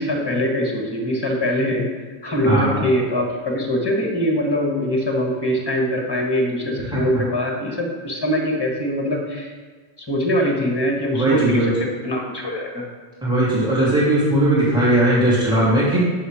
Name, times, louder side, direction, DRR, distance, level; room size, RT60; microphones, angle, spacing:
voice 1, 0.0-1.9 2.2-9.5 10.1-12.8 13.9-14.0, equal, 20° left, 0 dB, 1.5 m, -22 dB
voice 2, 11.1-11.7 13.2-16.0, right 1 dB, 5° right, -10 dB, 2.8 m, -18 dB
9.1 x 6.5 x 4.9 m, 1.4 s
omnidirectional pair, 1.2 m